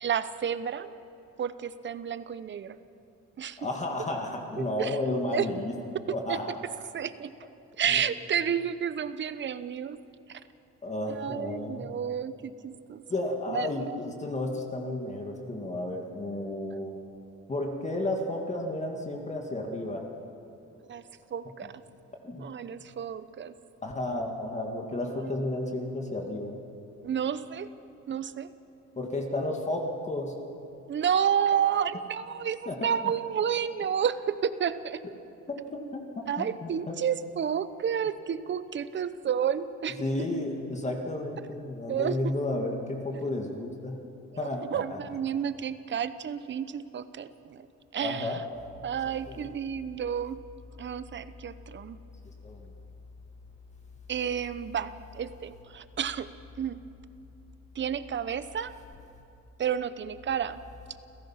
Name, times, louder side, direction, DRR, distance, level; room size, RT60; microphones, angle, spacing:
voice 1, 0.0-0.9 1.4-2.8 3.4-3.6 4.8-5.0 5.3-5.5 6.3-6.4 6.9-7.3 7.8-10.0 10.3-10.4 11.1-13.0 13.5-13.7 16.7-16.8 20.9-21.0 21.3-21.8 22.4-23.5 25.1-25.3 27.0-27.7 28.1-28.5 30.9-35.0 36.3-40.0 41.9-42.2 44.7-47.7 47.9-48.4 48.8-50.4 50.8-52.0 54.1-56.3 56.6-56.8 57.7-58.7 59.6-60.6, right 8 dB, 40° right, 14 dB, 0.8 m, -30 dB
voice 2, 3.6-5.7 6.1-6.6 7.9-8.0 10.8-11.9 13.1-17.0 17.5-20.1 21.6-21.7 22.2-22.5 23.8-26.6 29.0-30.3 32.7-32.8 35.5-37.0 40.0-44.0 44.4-45.1 48.0-48.4 49.3-49.5 52.4-52.7, left 1 dB, 25° left, 1 dB, 2.0 m, -32 dB
28.5 x 16.0 x 5.8 m, 2.7 s
cardioid pair, 115°, 29 cm